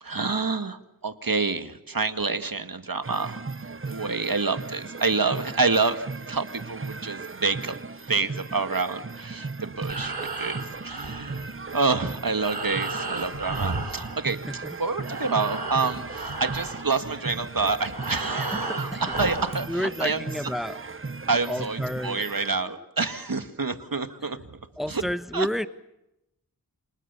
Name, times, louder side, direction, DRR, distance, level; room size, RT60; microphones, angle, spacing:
voice 1, 0.0-3.4 3.9-7.8 8.1-14.4 14.8-20.2 21.3-24.6 24.9-25.0 25.3-25.5, right 4 dB, 60° right, 9 dB, 2.1 m, -28 dB
sound 1, 3.0-22.5, right 4 dB, 35° right, 0.9 m, -37 dB
Breathing, 9.7-14.7 15.0-19.7, right 3 dB, 75° right, 5.1 m, -34 dB
voice 2, 14.5-14.8 18.5-19.2 19.7-20.8 21.5-22.8 24.2-24.3 24.8-25.7, equal, ahead, 12 dB, 1.3 m, -31 dB
28.5 x 27.0 x 7.0 m, 0.89 s
wide cardioid pair, 55°, 39 cm